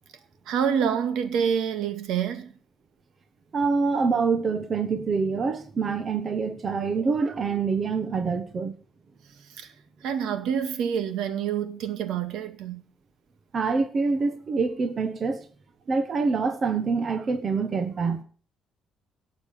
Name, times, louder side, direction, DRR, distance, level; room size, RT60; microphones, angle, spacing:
voice 1, 0.5-2.5 9.5-9.7 10.0-12.8, right 8 dB, 70° right, 2.1 m, -27 dB
voice 2, 3.5-8.7 13.5-15.4 15.9-18.2, right 4 dB, 25° right, 1.1 m, -26 dB
18.0 x 7.3 x 6.6 m
cardioid pair, 180°, 0 cm